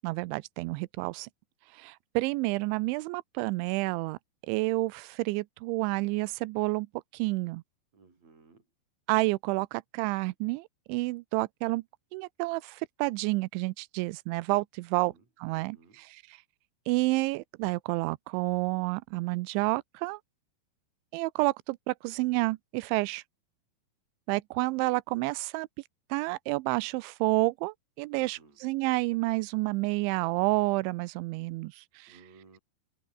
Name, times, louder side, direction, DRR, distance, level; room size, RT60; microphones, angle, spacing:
voice 1, 0.0-1.3 1.8-4.2 4.5-6.9 7.1-7.6 9.1-11.8 12.1-15.1 15.4-15.8 16.1-16.2 16.9-20.2 21.1-23.2 24.3-25.7 26.1-32.2, right 23 dB, 85° right, 3.0 m, -29 dB
voice 2, 7.9-8.7 15.0-15.2 15.5-16.0 28.1-28.6 32.1-32.6, right 4 dB, 35° right, 6.5 m, -57 dB
open air
omnidirectional pair, 5.3 m